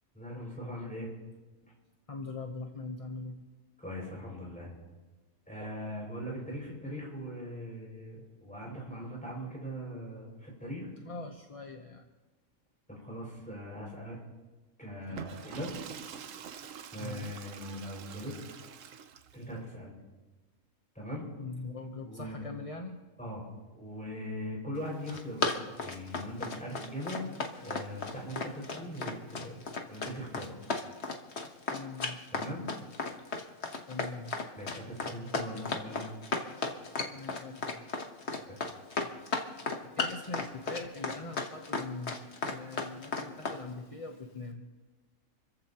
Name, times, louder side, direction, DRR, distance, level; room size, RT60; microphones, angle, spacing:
voice 1, 0.1-1.1 1.6-1.7 3.8-4.7 5.5-10.9 12.9-14.2 14.8-15.7 16.9-18.3 19.3-19.9 20.9-21.2 22.1-22.5 23.2-23.5 23.7-27.2 27.6-29.6 29.9-30.6 32.3-32.6 34.5-36.0 38.5-38.6, equal, 5° left, -3 dB, 5.9 m, -40 dB
voice 2, 2.1-3.4 11.0-12.0 17.0-17.3 21.4-23.0 31.7-32.3 33.8-34.5 37.1-37.9 40.0-44.6, left 3 dB, 30° left, 3 dB, 0.8 m, -42 dB
Water / Toilet flush, 15.0-19.5, right 8 dB, 65° right, 1.1 m, -46 dB
Run, 24.9-43.6, left 3 dB, 50° left, 1.5 m, -34 dB
29.0 x 15.0 x 3.0 m, 1.2 s
omnidirectional pair, 1.5 m